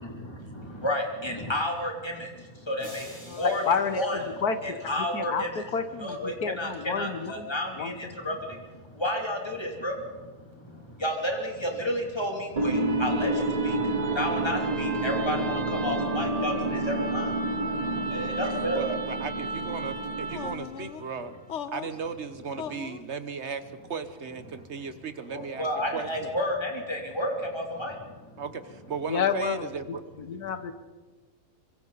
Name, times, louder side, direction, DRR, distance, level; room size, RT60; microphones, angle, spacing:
voice 1, 0.0-3.6 4.0-5.7 6.0-18.9 20.3-20.4 22.6-22.8 24.5-24.9 25.3-28.4, equal, 15° left, 0 dB, 3.1 m, -32 dB
sound 1, 2.8-5.1, right 1 dB, 10° right, 2.9 m, -50 dB
voice 2, 3.3-7.5 7.8-8.1 29.1-29.7 30.2-30.7, left 6 dB, 80° left, 10 dB, 1.7 m, -30 dB
sound 2, 12.6-20.7, right 2 dB, 25° right, 1.2 m, -29 dB
voice 3, 18.7-21.3 21.7-23.6 23.9-25.7 25.9-26.3 28.4-30.0, right 5 dB, 50° right, 10 dB, 1.4 m, -36 dB
sound 3, 20.3-21.0 21.5-22.0 22.6-23.0, left 8 dB, 55° left, 1.0 m, -38 dB
26.5 x 24.5 x 4.1 m, 1.4 s
omnidirectional pair, 1.6 m